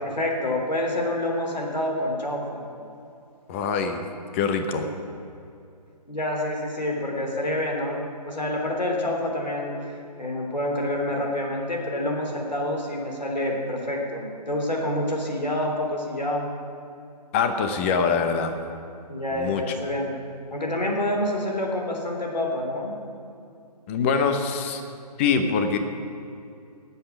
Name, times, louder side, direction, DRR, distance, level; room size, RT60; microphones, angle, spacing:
voice 1, 0.0-2.7 6.1-8.0 8.3-16.5 19.1-20.1 20.5-22.9, left 1 dB, 85° left, 0 dB, 3.4 m, -27 dB
voice 2, 3.5-4.0 4.3-4.9 17.3-18.6 19.3-19.6 23.9-24.8 25.2-25.8, left 5 dB, 20° left, 7 dB, 0.8 m, -24 dB
19.0 x 8.1 x 6.0 m, 2.6 s
figure-of-eight pair, 150°, 21 cm